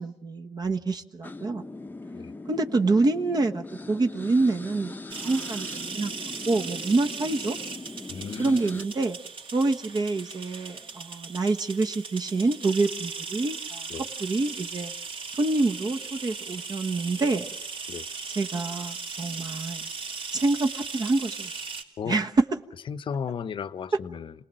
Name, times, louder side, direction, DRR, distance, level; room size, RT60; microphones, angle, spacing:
voice 1, 0.0-1.6 2.5-6.1 6.5-7.6 8.4-9.2 9.5-13.9 14.2-14.9 15.4-17.4 18.3-19.9 20.3-21.5 22.0-22.4, right 3 dB, 40° right, 1.3 m, -26 dB
sound 1, 1.2-8.9, left 2 dB, 20° left, 0.8 m, -41 dB
sound 2, 5.1-21.8, right 5 dB, 55° right, 3.4 m, -38 dB
voice 2, 8.1-8.6 13.9-14.1 17.9-18.1 22.0-22.2 22.9-24.5, left 7 dB, 55° left, 0.9 m, -34 dB
27.5 x 19.5 x 7.6 m
cardioid pair, 95°, 10 cm